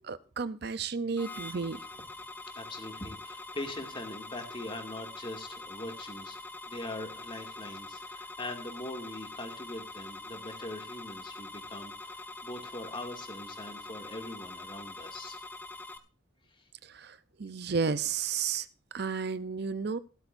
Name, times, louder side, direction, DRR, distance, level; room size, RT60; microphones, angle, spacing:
voice 1, 0.1-1.8 17.4-18.6 18.9-20.0, right 5 dB, 60° right, 14 dB, 0.6 m, -32 dB
sound 1, 1.2-16.0, left 2 dB, 10° left, 1.0 m, -44 dB
voice 2, 2.5-6.4 6.7-15.4 16.5-16.7, left 1 dB, 25° left, 4 dB, 2.3 m, -42 dB
16.5 x 12.5 x 2.6 m, 0.34 s
head